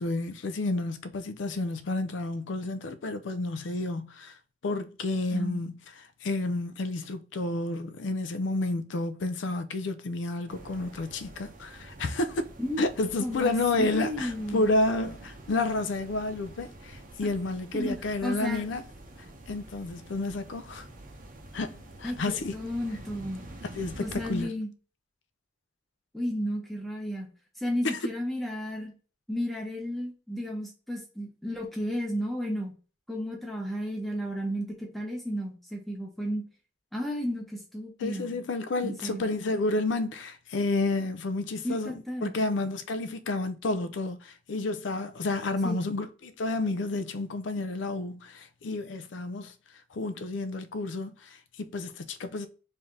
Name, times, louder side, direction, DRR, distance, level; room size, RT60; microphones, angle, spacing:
voice 1, 0.0-4.4 4.6-12.5 12.8-18.8 19.5-20.9 21.5-22.6 23.7-24.6 27.8-28.0 38.0-49.5 49.9-52.5, left 2 dB, 75° left, 0.5 m, -30 dB
voice 2, 5.3-5.6 12.6-12.9 13.2-14.7 17.7-18.0 18.2-18.7 22.0-22.2 22.5-23.4 24.0-24.7 26.1-27.3 27.6-28.9 29.3-32.7 33.1-36.4 36.9-38.4 38.8-39.2 41.6-42.4 45.6-45.8, equal, ahead, 0.8 m, -33 dB
sound 1, 10.5-24.4, right 1 dB, 45° right, 0.7 m, -47 dB
3.2 x 2.7 x 3.6 m
head